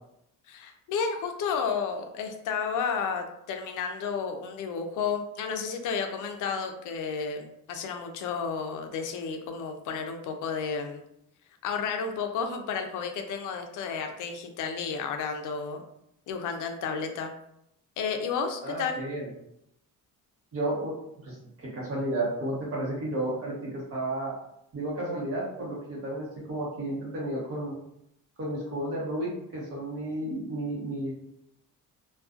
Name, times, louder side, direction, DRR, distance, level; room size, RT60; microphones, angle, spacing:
voice 1, 0.5-11.0 11.6-15.8 16.3-17.3 18.0-19.1, left 6 dB, 65° left, 5 dB, 0.5 m, -32 dB
voice 2, 18.6-19.3 20.5-20.9 21.2-24.3 24.7-27.7 28.4-31.1, right 1 dB, 45° right, -5 dB, 0.9 m, -32 dB
2.4 x 2.2 x 2.4 m, 0.78 s
cardioid pair, 155°, 33 cm